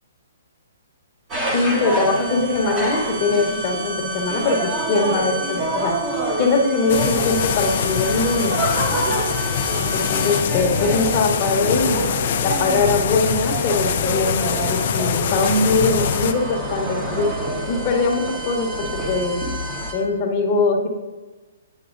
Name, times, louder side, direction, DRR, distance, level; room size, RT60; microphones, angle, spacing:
sound 1, 1.3-19.9, right 2 dB, 15° right, 0.9 m, -27 dB
voice 1, 1.5-6.0 6.4-8.6 9.8-12.1 12.4-17.3 17.7-19.4 19.9-20.9, left 3 dB, 30° left, 1 dB, 1.0 m, -21 dB
sound 2, 6.9-16.3, left 8 dB, 50° left, 0.4 m, -23 dB
8.0 x 8.0 x 2.5 m, 1.2 s
hypercardioid pair, 160°, 0 cm